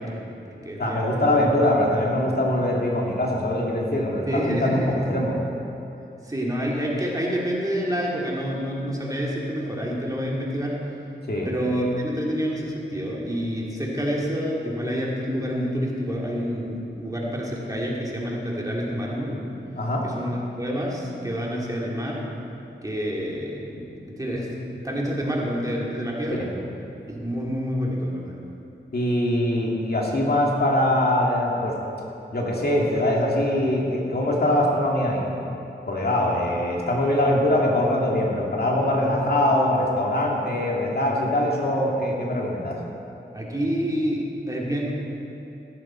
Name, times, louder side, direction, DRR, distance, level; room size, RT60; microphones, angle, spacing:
voice 1, 0.0-1.3 4.3-5.1 6.2-10.8 11.4-19.4 20.0-22.2 22.8-24.5 24.8-26.5 27.1-28.3 39.0-39.2 43.3-44.9, equal, 20° right, -3 dB, 2.4 m, -28 dB
voice 2, 0.8-5.4 11.3-11.5 19.7-20.0 26.4-26.5 28.9-31.7 32.3-35.2 35.9-42.8, left 1 dB, 55° left, -2 dB, 2.3 m, -22 dB
15.0 x 13.0 x 4.4 m, 2.8 s
wide cardioid pair, 95°, 19 cm